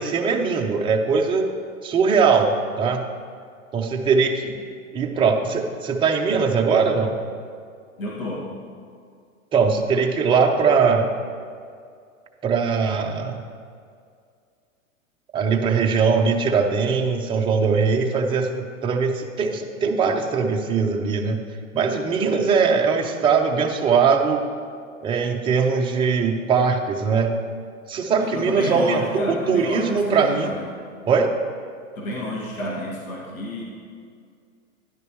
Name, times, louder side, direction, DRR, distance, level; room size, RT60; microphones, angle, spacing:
voice 1, 0.0-1.5 1.8-3.1 3.7-4.6 4.9-7.2 9.5-11.1 12.4-13.4 15.3-21.4 21.7-24.4 25.0-27.3 27.9-30.5 31.1-31.3, right 5 dB, 10° right, 2 dB, 0.6 m, -21 dB
voice 2, 8.0-8.5 28.1-30.8 32.0-33.6, left 1 dB, 75° left, -4 dB, 2.1 m, -30 dB
12.0 x 10.5 x 3.1 m, 2.2 s
hypercardioid pair, 115°, 41 cm